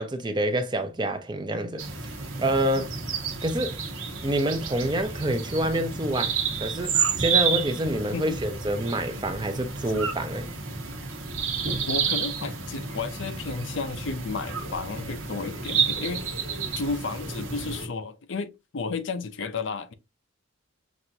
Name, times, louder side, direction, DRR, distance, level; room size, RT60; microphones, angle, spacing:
voice 1, 0.0-1.8 2.4-2.9 3.4-3.8 4.2-10.5, right 1 dB, 20° right, 0.5 m, -27 dB
sound 1, 1.8-17.9, right 6 dB, 75° right, 1.2 m, -30 dB
voice 2, 11.9-16.3 16.8-19.9, left 4 dB, 60° left, 0.5 m, -32 dB
6.0 x 2.6 x 2.7 m
head